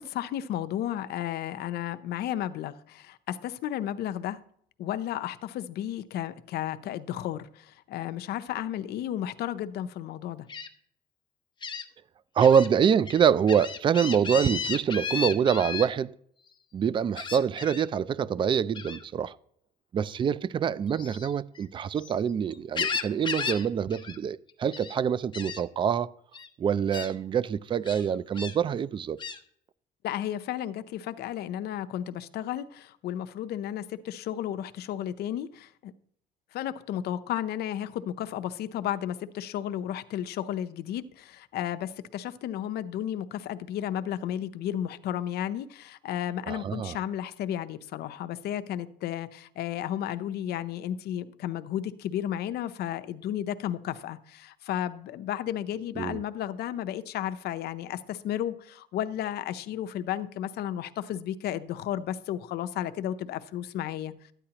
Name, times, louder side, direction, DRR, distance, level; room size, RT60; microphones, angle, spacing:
voice 1, 0.0-4.4 4.8-10.5 30.0-35.9 36.5-64.1, left 11 dB, 70° left, 0.7 m, -33 dB
Gull seagull, 10.5-10.7 11.6-11.8 12.4-12.7 13.1-15.9 17.2-17.9 18.8-19.0 20.9-22.1 22.5-23.7 23.9-24.2 24.5-25.0 25.3-25.6 26.3-26.5 26.9-27.1 27.9-28.6 29.2-29.4, left 5 dB, 25° left, 1.0 m, -34 dB
voice 2, 12.4-16.1 16.7-19.4 19.9-26.1 26.6-29.2 46.5-47.0 56.0-56.2, right 7 dB, 30° right, 0.3 m, -25 dB
13.0 x 9.9 x 2.9 m
cardioid pair, 110°, 17 cm